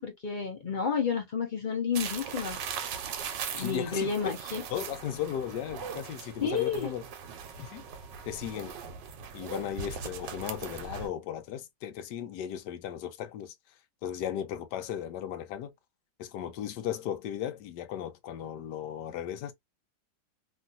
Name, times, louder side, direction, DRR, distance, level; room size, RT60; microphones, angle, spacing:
voice 1, 0.0-2.6 3.5-4.6 6.4-6.9, left 6 dB, 55° left, 0.5 m, -30 dB
sound 1, 1.9-11.1, right 7 dB, 90° right, 1.3 m, -40 dB
voice 2, 3.6-4.3 4.7-7.0 7.6-7.8 8.3-8.8 9.3-13.5 14.0-15.7 16.2-19.5, left 10 dB, 75° left, 1.2 m, -36 dB
3.1 x 2.4 x 2.5 m
omnidirectional pair, 1.9 m